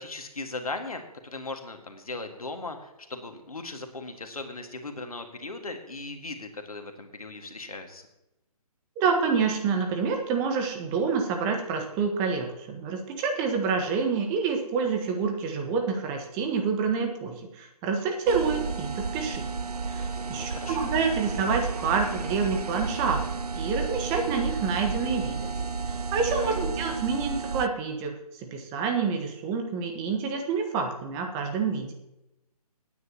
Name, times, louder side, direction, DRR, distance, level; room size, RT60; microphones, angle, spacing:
voice 1, 0.0-8.1 20.3-20.9 26.3-27.0, left 3 dB, 70° left, 6 dB, 1.8 m, -38 dB
voice 2, 9.0-19.5 19.9-23.2 23.5-25.5 25.9-31.9, right 5 dB, 20° right, 4 dB, 1.3 m, -28 dB
sound 1, 18.3-27.7, right 4 dB, 85° right, 0.5 m, -32 dB
20.5 x 9.6 x 2.9 m, 0.92 s
figure-of-eight pair, 135°, 19 cm